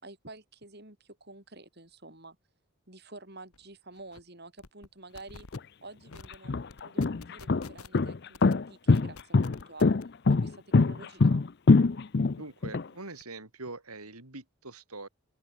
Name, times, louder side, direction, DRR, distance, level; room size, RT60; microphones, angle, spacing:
voice 1, 0.0-2.4 2.9-5.5 5.8-10.0 10.3-11.4, right 2 dB, 45° right, 5.6 m, -49 dB
sound 1, 3.5-3.6 3.9-4.2 4.6-4.9 5.1-5.6 6.1-6.4 6.7-8.0 8.3-8.5 8.9-10.0, left 4 dB, 80° left, 1.5 m, -48 dB
sound 2, 5.5-5.6 6.3-12.8, left 3 dB, 50° left, 0.5 m, -23 dB
voice 2, 12.4-15.1, right 2 dB, 85° right, 5.0 m, -43 dB
open air
head